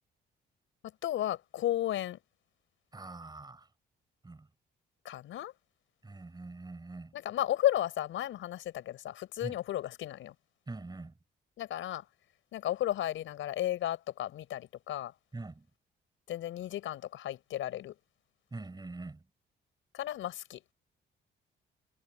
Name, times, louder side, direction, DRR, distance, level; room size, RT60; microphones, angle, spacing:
voice 1, 1.0-2.2 5.0-5.5 7.1-10.3 11.6-12.0 12.5-15.1 16.3-17.9 19.9-20.6, left 12 dB, 80° left, 5.6 m, -34 dB
voice 2, 2.9-3.7 4.2-4.5 6.0-7.1 9.4-9.6 10.7-11.1 15.3-15.7 18.5-19.2, right 3 dB, 20° right, 6.0 m, -43 dB
cardioid pair, 90°, 20 cm